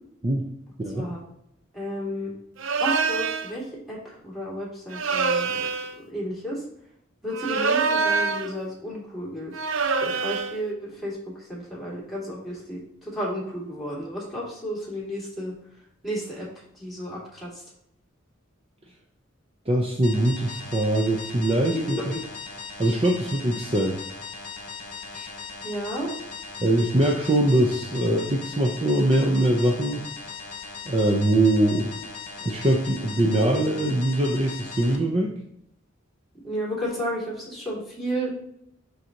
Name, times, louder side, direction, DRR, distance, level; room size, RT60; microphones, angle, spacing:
voice 1, 0.8-1.1 19.7-21.8 22.8-24.0 26.6-30.0 30.8-31.9 32.4-35.3, right 1 dB, 30° right, 0 dB, 0.7 m, -22 dB
voice 2, 1.7-2.3 2.8-5.7 6.0-6.6 7.2-9.6 10.0-15.5 16.0-16.5 16.7-17.5 21.9-22.2 25.1-25.3 25.6-26.1 36.4-38.3, equal, ahead, -6 dB, 2.6 m, -32 dB
sound 1, 2.6-3.5 4.9-6.0 7.3-8.6 9.5-10.6, right 4 dB, 70° right, 0.6 m, -25 dB
sound 2, 20.0-35.0, left 5 dB, 40° left, 1.3 m, -39 dB
11.5 x 4.0 x 2.9 m, 0.75 s
head